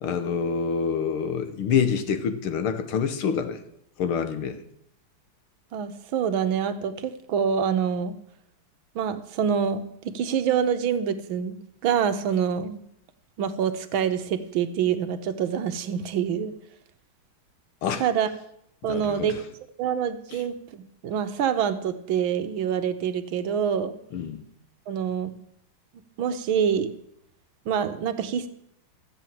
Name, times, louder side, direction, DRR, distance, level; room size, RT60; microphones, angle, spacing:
voice 1, 0.0-3.6 4.0-4.6 17.8-18.1 18.9-19.4 24.1-24.4, left 6 dB, 80° left, 1.9 m, -27 dB
voice 2, 5.7-8.2 8.9-11.5 11.8-12.8 13.4-16.5 18.0-18.3 18.8-19.4 19.8-24.0 24.9-25.3 26.2-26.9 27.7-28.5, right 8 dB, 70° right, 1.6 m, -26 dB
13.5 x 7.7 x 7.4 m
omnidirectional pair, 2.4 m